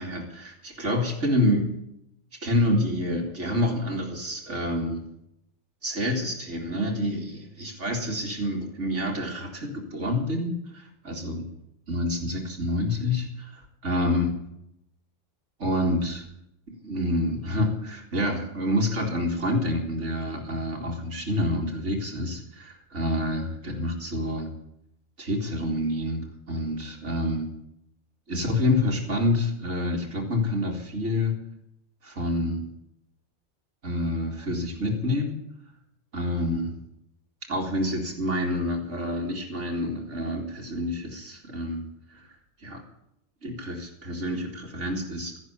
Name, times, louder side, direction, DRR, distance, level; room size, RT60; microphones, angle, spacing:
voice 1, 0.0-1.7 2.4-5.0 5.8-11.5 11.9-14.3 15.6-16.2 16.8-24.5 25.2-27.5 28.3-31.3 32.0-32.7 33.8-35.4 36.1-36.8 37.5-41.8 42.1-42.3 42.6-42.8 43.4-45.4, left 1 dB, 75° right, 0 dB, 2.8 m, -28 dB
13.5 x 11.0 x 8.3 m, 0.77 s
omnidirectional pair, 1.2 m